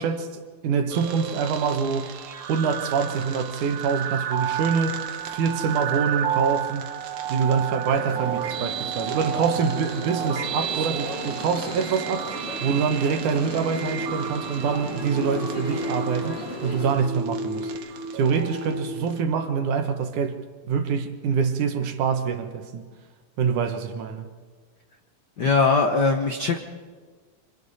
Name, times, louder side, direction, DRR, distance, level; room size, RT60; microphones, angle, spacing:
voice 1, 0.0-2.2 2.5-6.8 7.3-17.7 18.1-20.4 20.7-22.9 23.4-24.3, right 6 dB, 70° right, 2.7 m, -25 dB
sound 1, 0.9-19.2, right 7 dB, 55° right, 1.7 m, -31 dB
sound 2, 7.9-17.0, left 1 dB, 25° left, 3.1 m, -36 dB
voice 2, 25.4-26.6, left 4 dB, 65° left, 1.0 m, -20 dB
27.5 x 27.0 x 4.2 m
omnidirectional pair, 3.7 m